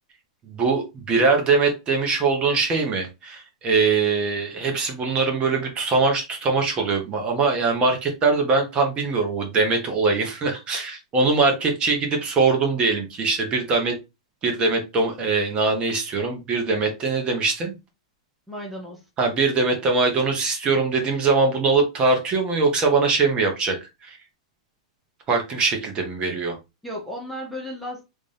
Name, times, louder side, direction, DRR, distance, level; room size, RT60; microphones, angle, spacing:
voice 1, 0.5-14.0 14.4-17.8 19.2-24.2 25.3-26.6, right 4 dB, 25° right, 1.1 m, -22 dB
voice 2, 18.5-19.1 26.8-28.0, equal, ahead, 0.8 m, -34 dB
3.3 x 2.7 x 3.3 m
hypercardioid pair, 140°, 4 cm